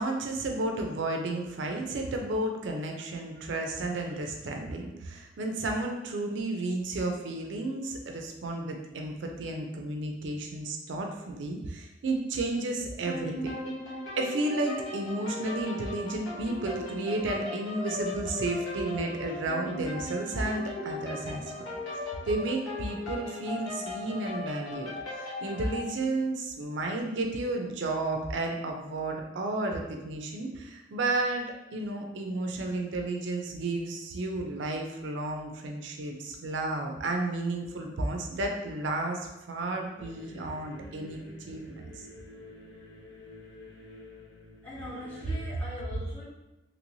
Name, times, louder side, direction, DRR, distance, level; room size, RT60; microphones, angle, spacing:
voice 1, 0.0-13.5 14.2-31.5 31.7-41.2 41.5-42.0, right 2 dB, 80° right, 2 dB, 0.4 m, -32 dB
sound 1, 13.1-25.9, left 2 dB, 85° left, 0.9 m, -37 dB
sound 2, 40.0-45.4, left 2 dB, 70° left, 0.6 m, -49 dB
voice 2, 44.6-46.2, left 2 dB, 10° left, -10 dB, 1.0 m, -41 dB
3.0 x 2.9 x 2.6 m, 0.98 s
head